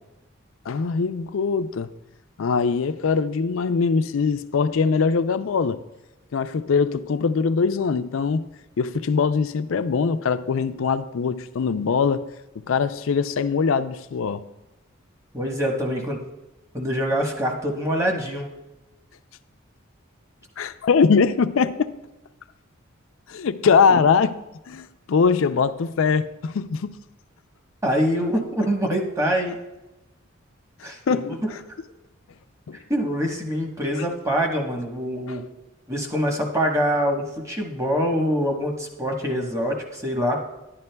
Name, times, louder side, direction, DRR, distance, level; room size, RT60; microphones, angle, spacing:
voice 1, 0.7-1.9 2.4-5.8 6.3-8.4 8.8-12.3 12.7-14.4 20.6-21.9 23.3-24.4 24.7-27.0 30.8-31.4 32.7-32.8 33.9-34.0 35.3-35.4, left 5 dB, 70° left, 0.4 m, -22 dB
voice 2, 15.3-16.2 16.7-18.5 27.8-29.6 30.8-31.5 32.7-35.4 35.9-40.4, equal, 15° right, 1.1 m, -25 dB
11.0 x 11.0 x 2.2 m
head